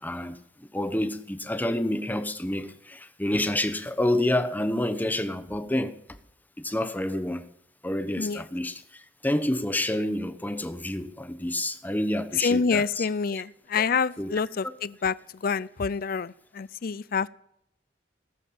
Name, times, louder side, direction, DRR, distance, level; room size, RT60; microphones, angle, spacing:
voice 1, 0.0-6.0 6.6-7.4 7.8-13.1 13.3-13.4 14.2-14.3 14.6-14.7, left 1 dB, 10° left, 1.0 m, -28 dB
voice 2, 12.4-15.1 15.4-17.3, left 5 dB, 55° left, 0.5 m, -27 dB
18.5 x 7.3 x 8.6 m
head